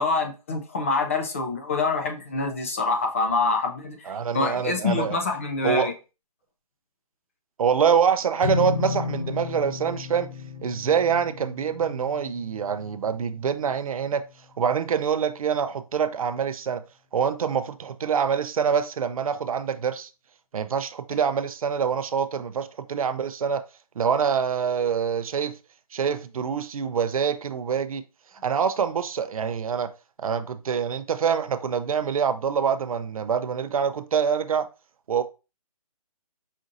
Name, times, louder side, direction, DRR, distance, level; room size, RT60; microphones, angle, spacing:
voice 1, 0.0-5.9, left 3 dB, 20° left, 0.3 m, -26 dB
voice 2, 4.1-5.2 5.6-5.9 7.6-10.3 10.6-14.2 14.6-16.8 17.1-20.1 20.5-23.6 24.0-25.5 25.9-28.0 28.4-29.9 30.2-34.7 35.1-35.2, right 7 dB, 65° right, 0.5 m, -25 dB
sound 1, 8.4-14.8, left 5 dB, 60° left, 0.7 m, -34 dB
5.1 x 2.6 x 2.5 m
hypercardioid pair, 155°, 20 cm